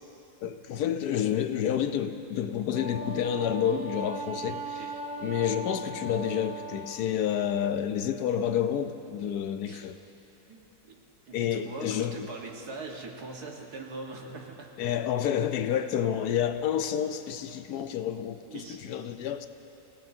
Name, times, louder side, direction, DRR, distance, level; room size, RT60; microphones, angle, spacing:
voice 1, 0.4-4.8 5.2-10.0 11.3-12.2 14.8-19.5, left 9 dB, 80° left, 9 dB, 1.2 m, -29 dB
Wind instrument woodwind instrument, 2.7-7.0, right 3 dB, 60° right, 1.5 m, -38 dB
voice 2, 10.5-11.0 11.3-14.8 15.2-15.4 18.4-18.8, right 3 dB, 80° right, 0 dB, 2.0 m, -42 dB
28.5 x 17.0 x 2.7 m, 3.0 s
omnidirectional pair, 1.6 m